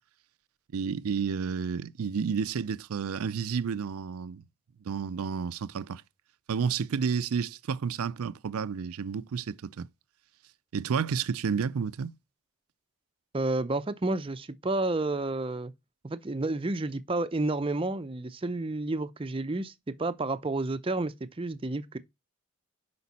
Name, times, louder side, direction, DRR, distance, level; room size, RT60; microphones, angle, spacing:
voice 1, 0.7-4.4 4.8-6.0 6.5-9.8 10.7-12.2, right 6 dB, 80° right, 0.4 m, -31 dB
voice 2, 13.3-15.7 16.0-19.7 20.0-22.0, right 2 dB, 25° right, 0.5 m, -30 dB
8.2 x 5.2 x 4.1 m
head